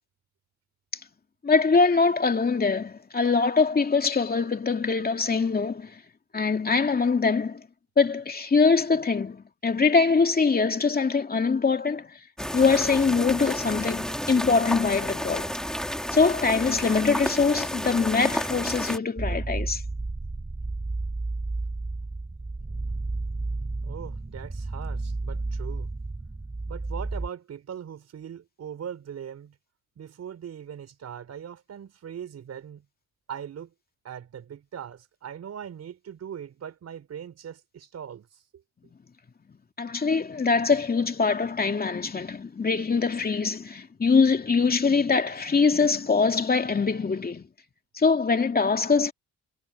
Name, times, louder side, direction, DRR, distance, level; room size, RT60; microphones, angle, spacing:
voice 1, 1.4-5.9 6.3-7.6 8.0-12.1 12.5-15.5 16.1-19.8 39.8-47.5 47.9-49.1, left 4 dB, 30° left, 2.7 m, -23 dB
sound 1, 12.4-19.0, equal, ahead, 3.0 m, -31 dB
sound 2, 19.2-27.3, right 3 dB, 20° right, 4.7 m, -32 dB
voice 2, 23.8-25.9 26.7-29.5 30.0-32.8 33.3-33.7 34.0-38.6, right 8 dB, 60° right, 5.0 m, -40 dB
cardioid pair, 90°, 30 cm